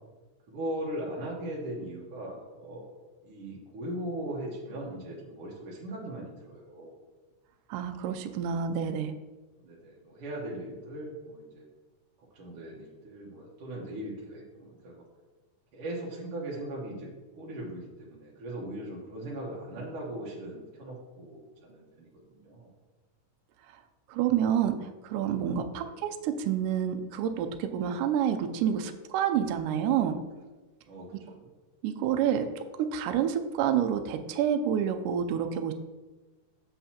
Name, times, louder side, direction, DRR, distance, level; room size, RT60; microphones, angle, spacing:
voice 1, 0.5-2.9 3.2-7.0 8.6-8.8 9.6-11.7 12.2-15.0 15.7-17.1 17.3-22.7 25.7-26.0 30.9-31.5, right 1 dB, 60° right, -4 dB, 1.6 m, -39 dB
voice 2, 7.7-9.1 24.1-30.2 31.8-32.5 32.8-35.7, right 9 dB, 80° right, 7 dB, 2.0 m, -28 dB
7.9 x 7.3 x 2.8 m, 1.2 s
omnidirectional pair, 3.9 m